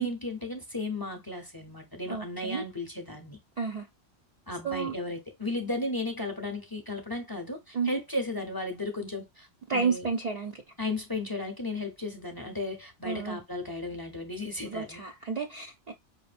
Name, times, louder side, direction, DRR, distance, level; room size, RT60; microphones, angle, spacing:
voice 1, 0.0-3.4 4.5-10.1 10.8-15.0, left 2 dB, 25° left, 0.6 m, -35 dB
voice 2, 2.1-2.6 3.6-3.9 4.6-4.9 7.7-7.9 9.7-10.6 13.0-13.4 14.7-15.9, right 5 dB, 55° right, 0.5 m, -31 dB
4.9 x 2.8 x 2.4 m
omnidirectional pair, 1.1 m